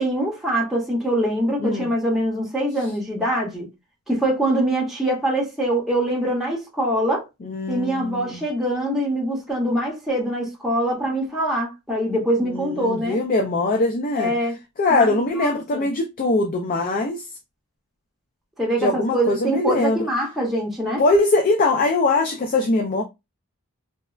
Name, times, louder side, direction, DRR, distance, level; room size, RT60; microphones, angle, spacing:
voice 1, 0.0-3.7 4.1-7.2 7.7-13.2 14.2-14.6 14.9-15.9 18.6-21.0, right 1 dB, ahead, 0.8 m, -24 dB
voice 2, 7.4-8.4 12.4-14.3 14.8-17.2 18.8-20.0 21.0-23.0, left 2 dB, 40° left, 0.4 m, -21 dB
3.2 x 2.1 x 2.3 m
head